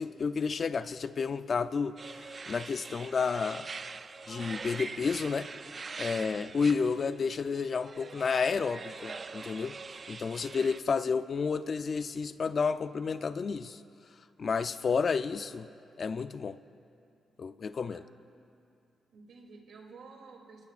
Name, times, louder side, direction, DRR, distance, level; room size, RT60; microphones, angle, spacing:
voice 1, 0.0-2.0 2.5-3.7 4.3-5.5 6.0-9.7 10.1-13.8 14.4-15.7 16.0-16.6 17.4-18.0, left 5 dB, 50° left, 12 dB, 0.5 m, -31 dB
sound 1, 2.0-10.8, right 4 dB, 40° right, 0.4 m, -43 dB
voice 2, 6.0-6.5 10.5-10.6 17.9-18.5 19.1-20.7, right 4 dB, 75° right, 1 dB, 2.9 m, -52 dB
29.5 x 19.0 x 2.5 m, 2.5 s
cardioid pair, 95°, 0 cm